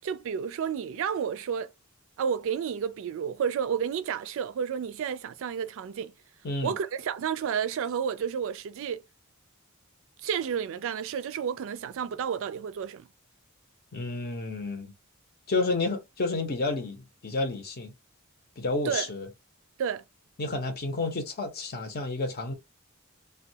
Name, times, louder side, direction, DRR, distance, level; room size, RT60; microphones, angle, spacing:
voice 1, 0.0-1.7 2.2-6.1 6.6-9.0 10.2-13.1 18.8-19.1 19.8-20.0, right 7 dB, 65° right, 0.3 m, -31 dB
voice 2, 13.9-14.9 15.5-17.9 18.6-19.3 20.4-22.5, left 3 dB, 50° left, 0.7 m, -30 dB
2.3 x 2.2 x 2.7 m
head